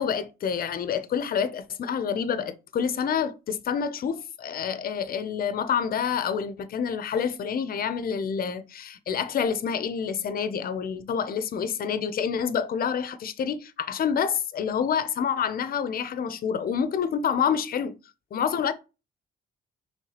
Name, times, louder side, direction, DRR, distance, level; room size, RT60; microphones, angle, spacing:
voice 1, 0.0-17.9 18.3-18.7, left 7 dB, 50° left, 0.5 m, -28 dB
4.6 x 3.2 x 2.9 m
cardioid pair, 90°, 20 cm